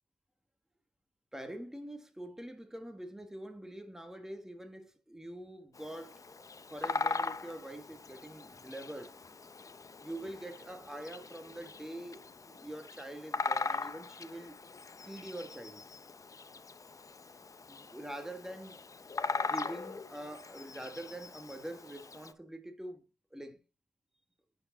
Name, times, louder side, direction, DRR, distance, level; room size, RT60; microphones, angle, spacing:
voice 1, 1.3-6.2 6.6-9.1 10.0-14.6 15.0-15.8 17.7-23.0 23.3-23.6, right 1 dB, 5° right, 1.5 m, -45 dB
Bird vocalization bird call bird song, 5.7-22.3, left 4 dB, 30° left, 0.7 m, -40 dB
9.6 x 4.8 x 4.0 m
cardioid pair, 70°, 12 cm